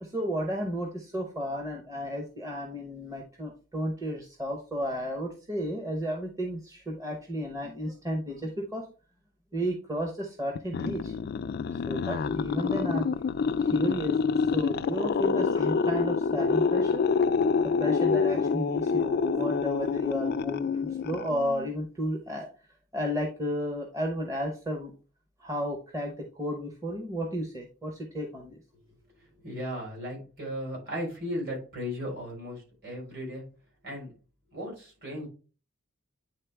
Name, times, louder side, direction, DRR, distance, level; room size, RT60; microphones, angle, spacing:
voice 1, 0.0-8.9 9.5-11.1 11.7-13.1 13.6-17.1 17.6-22.5 22.9-24.9 25.4-28.6, equal, 15° right, 1 dB, 0.8 m, -33 dB
sound 1, 10.6-21.7, left 5 dB, 45° left, 0.3 m, -27 dB
voice 2, 29.4-33.4 33.8-34.1 34.5-35.3, equal, 50° right, -2 dB, 4.0 m, -36 dB
9.1 x 3.8 x 3.4 m, 0.35 s
head